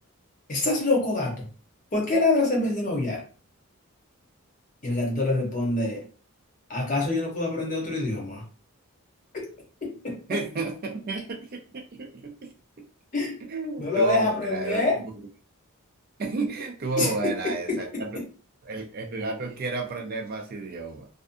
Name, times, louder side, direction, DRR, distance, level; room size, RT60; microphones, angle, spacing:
voice 1, 0.5-1.5 1.9-3.2 4.8-6.0 6.7-8.5 9.3-9.5 9.8-10.4 13.1-13.4 13.8-15.0 17.0-18.2, left 2 dB, 35° left, -1 dB, 0.8 m, -26 dB
voice 2, 10.3-12.5 13.4-15.1 16.2-18.2 18.6-21.2, right 3 dB, 45° right, 2 dB, 0.4 m, -32 dB
2.5 x 2.2 x 2.5 m, 0.38 s
head